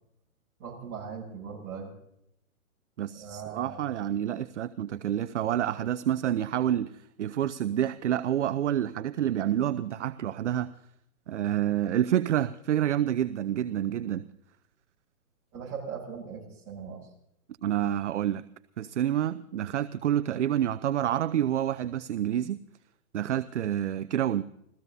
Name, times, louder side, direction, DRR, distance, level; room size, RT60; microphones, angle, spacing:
voice 1, 0.6-1.9 3.1-4.0 15.5-17.1, right 6 dB, 25° right, -3 dB, 6.9 m, -40 dB
voice 2, 3.0-10.7 11.3-14.3 17.6-18.4 18.8-22.6 23.1-24.4, right 11 dB, 55° right, 13 dB, 0.6 m, -28 dB
29.5 x 15.5 x 2.7 m, 0.78 s
hypercardioid pair, 160°, 43 cm